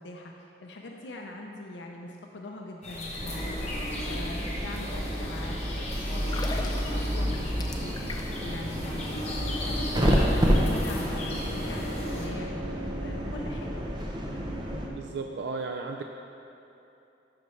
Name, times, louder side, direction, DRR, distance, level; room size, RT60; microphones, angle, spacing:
voice 1, 0.0-11.9 12.1-13.7, left 2 dB, 80° left, 1 dB, 0.6 m, -42 dB
sound 1, 2.8-12.3, left 1 dB, 35° left, 1.2 m, -37 dB
sound 2, 3.2-14.9, equal, 25° right, 0.7 m, -29 dB
sound 3, 6.3-8.5 8.8-9.0, left 3 dB, 20° left, 0.4 m, -39 dB
voice 2, 14.9-16.0, right 4 dB, 70° right, 3 dB, 0.4 m, -34 dB
12.5 x 5.3 x 3.2 m, 2.8 s
head